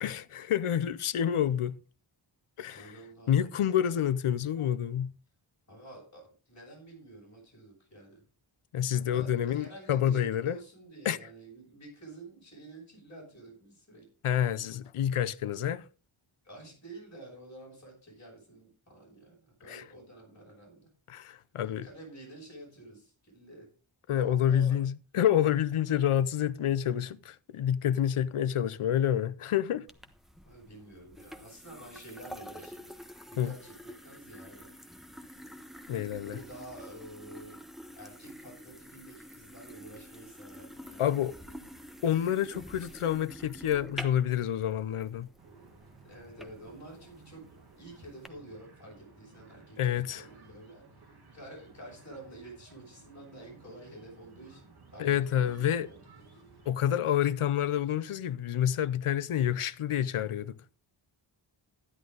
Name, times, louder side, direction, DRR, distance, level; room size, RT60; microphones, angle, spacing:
voice 1, 0.0-1.8 2.6-2.9 3.3-5.1 8.7-10.6 11.0-11.2 14.2-15.8 19.7-19.8 21.1-21.9 24.1-29.9 33.4-33.5 35.9-36.4 41.0-41.3 42.0-45.3 49.8-50.2 55.0-55.9 56.7-60.6, left 10 dB, 90° left, 0.7 m, -28 dB
voice 2, 2.7-3.5 5.7-8.2 9.1-14.1 16.4-20.9 21.8-23.7 24.1-24.8 30.4-32.9 33.3-34.7 36.2-37.6 38.0-41.6 46.0-47.4 47.8-50.9 51.3-56.3, right 2 dB, 35° left, 7.5 m, -49 dB
sound 1, 29.9-48.3, equal, ahead, 1.1 m, -48 dB
sound 2, 45.4-56.7, right 4 dB, 50° right, 3.0 m, -56 dB
13.0 x 11.0 x 3.9 m
wide cardioid pair, 125°, 49 cm